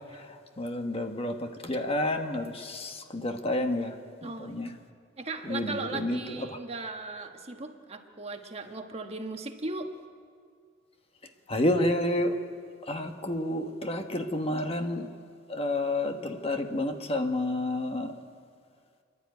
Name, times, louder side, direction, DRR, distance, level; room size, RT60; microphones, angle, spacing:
voice 1, 0.6-3.9 4.2-4.7 5.5-6.2 6.5-6.6 11.5-12.3 12.9-15.1 15.5-18.1, left 1 dB, 30° left, 5 dB, 1.3 m, -29 dB
voice 2, 4.2-4.7 5.2-9.9, right 3 dB, 35° right, 5 dB, 1.4 m, -37 dB
29.5 x 11.5 x 9.4 m, 2.1 s
head